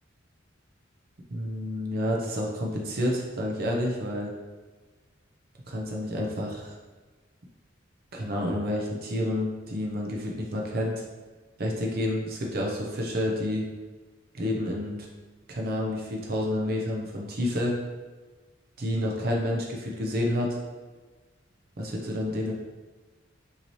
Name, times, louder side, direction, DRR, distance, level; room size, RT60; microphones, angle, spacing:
voice 1, 1.3-4.3 5.7-6.8 8.1-11.0 11.6-13.7 14.3-15.1 15.5-17.8 18.8-20.6 21.8-22.5, left 1 dB, 50° right, -1 dB, 0.6 m, -29 dB
5.6 x 2.8 x 3.1 m, 1.3 s
head